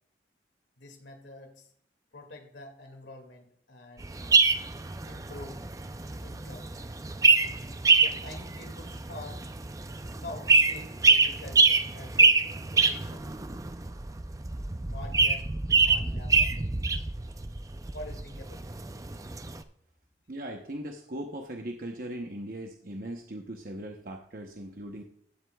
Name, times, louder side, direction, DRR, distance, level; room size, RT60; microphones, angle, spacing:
voice 1, 0.8-1.7 2.1-4.1 5.1-5.7 6.2-6.7 8.0-9.4 10.1-12.4 12.7-13.3 14.9-16.5 17.3-17.5 17.9-18.8, left 2 dB, 85° left, 4 dB, 2.2 m, -46 dB
sound 1, 4.0-19.6, right 4 dB, 20° right, 0.4 m, -25 dB
voice 2, 20.3-25.0, right 1 dB, 50° right, 2 dB, 0.9 m, -39 dB
15.5 x 7.9 x 2.3 m, 0.65 s
head